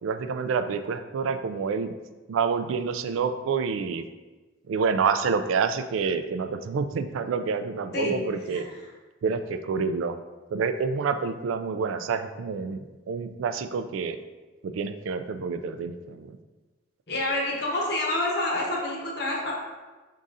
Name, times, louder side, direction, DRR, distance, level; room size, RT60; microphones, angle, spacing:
voice 1, 0.0-1.9 2.3-4.0 4.7-8.7 9.2-10.2 10.5-12.8 13.1-14.2 14.6-16.4, right 5 dB, 80° right, 10 dB, 0.3 m, -28 dB
voice 2, 17.1-19.5, left 1 dB, 55° left, -2 dB, 0.9 m, -27 dB
5.4 x 3.7 x 2.5 m, 1.2 s
head